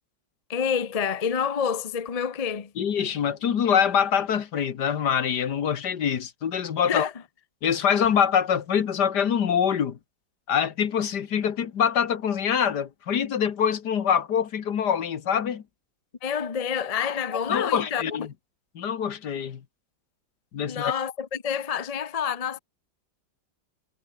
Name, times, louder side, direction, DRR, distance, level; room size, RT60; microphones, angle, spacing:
voice 1, 0.5-2.7 6.9-7.1 16.2-18.0 20.7-22.6, left 7 dB, 35° left, 0.6 m, -28 dB
voice 2, 2.8-7.1 7.6-10.0 10.5-15.6 17.5-18.3 18.8-19.6 20.5-20.9, left 8 dB, 60° left, 1.8 m, -24 dB
omnidirectional pair, 2.1 m